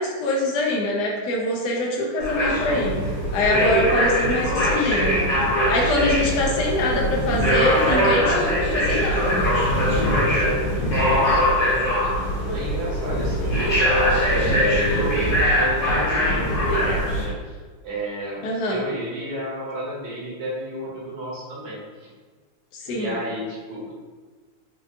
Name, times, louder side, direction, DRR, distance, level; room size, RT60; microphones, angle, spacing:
voice 1, 0.0-2.9 3.3-5.3 5.7-9.5 18.4-18.8 22.7-23.1, left 1 dB, 80° left, -2 dB, 0.9 m, -24 dB
sound 1, 2.2-17.3, equal, 60° left, 1.6 m, -21 dB
voice 2, 6.2-7.3 9.8-22.1 22.9-23.9, right 1 dB, 65° right, -5 dB, 1.5 m, -33 dB
4.7 x 2.4 x 2.6 m, 1.4 s
omnidirectional pair, 2.4 m